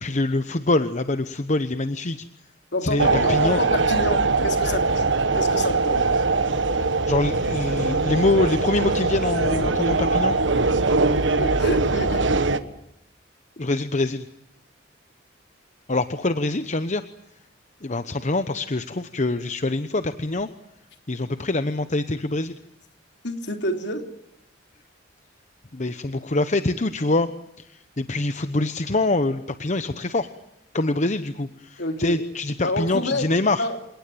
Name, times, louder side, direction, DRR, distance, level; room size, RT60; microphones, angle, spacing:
voice 1, 0.0-2.2 2.8-3.6 7.1-10.4 13.6-14.2 15.9-17.0 17.8-20.5 21.1-22.6 25.7-27.3 28.0-30.3 30.7-33.6, left 2 dB, 40° left, 11 dB, 1.0 m, -24 dB
voice 2, 2.7-5.1 5.4-6.1 11.4-12.3 23.2-24.1 31.8-32.2 32.6-33.8, left 1 dB, 65° left, 6 dB, 3.3 m, -28 dB
sound 1, 3.0-12.6, right 3 dB, 70° right, 1.5 m, -22 dB
28.0 x 18.5 x 9.3 m, 0.82 s
head